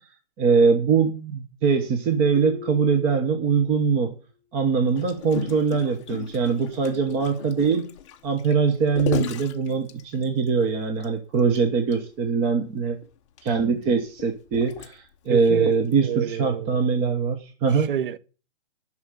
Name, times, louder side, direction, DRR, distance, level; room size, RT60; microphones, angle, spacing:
voice 1, 0.4-4.1 4.5-7.9 8.2-13.0 13.4-17.9, right 5 dB, 15° right, 1.0 m, -22 dB
sound 1, 2.3-4.0, left 6 dB, 75° right, 3.2 m, -42 dB
Gurgling, 5.0-10.5 11.0-11.1 11.4-11.6 11.9-12.0 12.8-15.3 15.9-16.1, left 9 dB, 25° left, 0.8 m, -35 dB
voice 2, 13.5-13.8 15.3-16.8 17.7-18.2, right 10 dB, 45° right, 0.9 m, -30 dB
11.5 x 6.1 x 8.5 m
hypercardioid pair, 155°, 36 cm